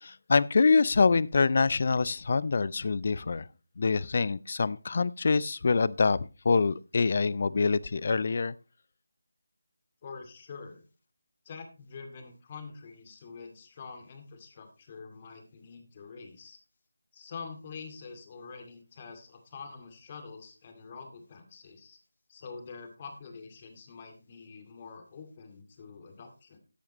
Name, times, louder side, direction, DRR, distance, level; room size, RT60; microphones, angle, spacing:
voice 1, 0.0-3.5 3.8-8.5, left 4 dB, 45° left, 0.5 m, -25 dB
voice 2, 10.0-10.8 11.5-16.6 17.1-22.0 22.3-26.6, left 5 dB, 30° left, 2.3 m, -46 dB
13.5 x 10.5 x 3.0 m
figure-of-eight pair, 160°, 0 cm